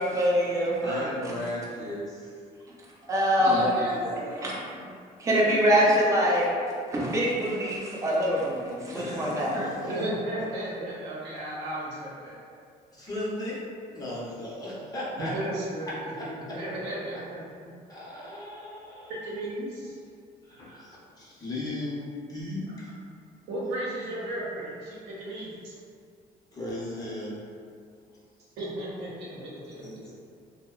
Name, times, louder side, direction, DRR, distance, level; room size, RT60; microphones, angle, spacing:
voice 1, 0.0-1.1 3.1-3.6 4.4-4.5 5.2-6.5 6.9-9.7, equal, 20° right, -4 dB, 0.4 m, -24 dB
voice 2, 0.8-2.3 2.9-3.0 3.4-3.8 4.0-4.6 8.9-10.1 12.9-13.6 13.9-15.3 15.9-16.6 17.9-19.2 20.5-22.9 26.5-27.4 29.8-30.1, left 1 dB, 20° left, -7 dB, 0.7 m, -36 dB
voice 3, 3.4-4.8 9.8-12.4 15.2-15.9 16.5-17.4 19.1-20.0 23.5-25.8 28.6-30.0, right 1 dB, 85° right, -6 dB, 0.7 m, -34 dB
2.6 x 2.1 x 2.3 m, 2.2 s
cardioid pair, 110°, 17 cm